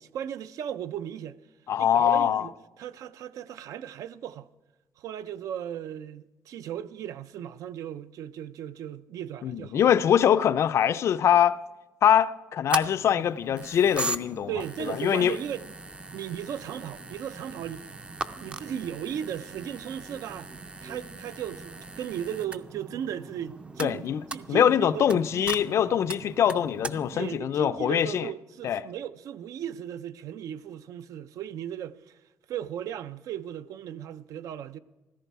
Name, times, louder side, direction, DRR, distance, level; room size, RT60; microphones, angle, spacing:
voice 1, 0.0-1.4 1.8-4.5 5.0-9.9 14.5-15.7 16.1-17.9 18.4-20.5 20.8-24.0 24.3-25.3 27.1-32.2 32.5-34.8, right 9 dB, 70° right, 0.5 m, -36 dB
voice 2, 1.7-2.5 9.4-11.6 12.0-14.5 14.9-15.4 23.8-24.2 24.5-28.3 28.6-28.8, left 9 dB, 50° left, 0.4 m, -23 dB
sound 1, 12.7-27.4, right 2 dB, 15° right, 0.4 m, -39 dB
15.0 x 14.0 x 4.6 m
cardioid pair, 155°, 6 cm